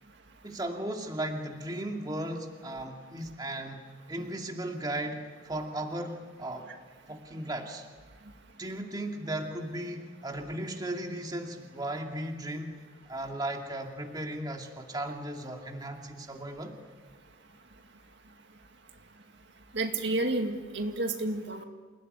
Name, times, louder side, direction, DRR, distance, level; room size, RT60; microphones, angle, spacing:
voice 1, 0.4-3.8 4.1-6.7 7.1-7.9 8.6-12.8 13.1-16.8, right 1 dB, 20° right, 2 dB, 2.4 m, -36 dB
voice 2, 19.7-21.6, right 2 dB, 55° right, 4 dB, 2.1 m, -30 dB
28.5 x 18.0 x 10.0 m, 1.5 s
head